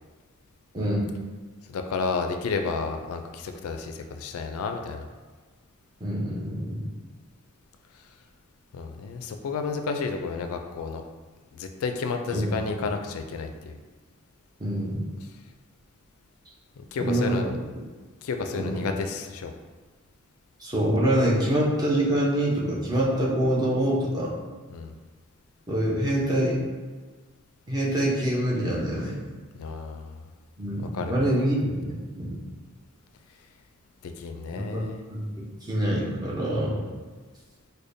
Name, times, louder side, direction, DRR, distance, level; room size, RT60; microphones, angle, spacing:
voice 1, 1.7-5.1 8.7-11.0 11.5-13.8 16.8-17.5 18.2-19.5 24.7-24.9 29.6-30.2 30.9-31.3 34.0-35.0, left 4 dB, 80° left, 6 dB, 0.3 m, -31 dB
voice 2, 6.0-6.8 12.3-12.6 14.6-15.0 17.0-17.4 18.5-18.8 20.6-24.3 25.7-26.6 27.7-29.2 30.6-32.4 34.5-34.8 35.1-36.9, right 1 dB, 20° right, -5 dB, 0.7 m, -25 dB
4.9 x 2.2 x 2.6 m, 1.4 s
head